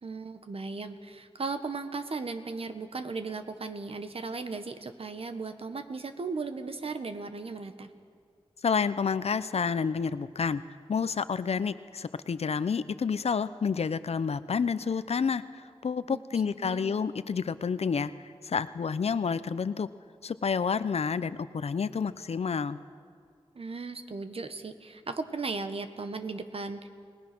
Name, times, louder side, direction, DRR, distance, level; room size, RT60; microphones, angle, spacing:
voice 1, 0.0-7.9 16.1-16.2 16.6-16.9 23.5-26.9, right 4 dB, 65° right, 8 dB, 1.4 m, -36 dB
voice 2, 8.6-10.6 10.9-18.1 18.4-19.9 20.2-22.8, left 6 dB, 75° left, 14 dB, 0.7 m, -29 dB
29.5 x 18.5 x 6.1 m, 2.1 s
cardioid pair, 55°, 11 cm